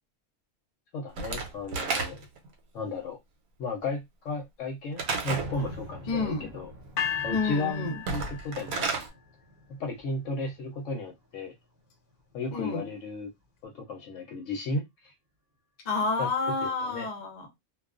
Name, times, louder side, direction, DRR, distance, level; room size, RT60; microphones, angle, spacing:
voice 1, 0.9-2.3 2.7-3.2 3.6-6.7 7.2-8.9 9.7-11.5 12.3-13.3 13.6-15.1 16.2-16.3 16.6-17.1, left 3 dB, 65° left, 0.9 m, -34 dB
Slam / Wood, 1.2-2.5 5.0-5.5 7.9-9.1, right 4 dB, 85° right, 1.1 m, -31 dB
sound 1, 2.6-2.7 3.2-3.3 4.9-11.3 11.8-12.7, left 1 dB, 35° right, 0.9 m, -47 dB
voice 2, 6.1-6.5 7.3-8.0 12.5-12.8 15.8-17.5, left 3 dB, 40° left, 0.6 m, -29 dB
sound 2, 7.0-9.1, left 8 dB, 90° left, 1.1 m, -34 dB
2.3 x 2.3 x 2.4 m
omnidirectional pair, 1.5 m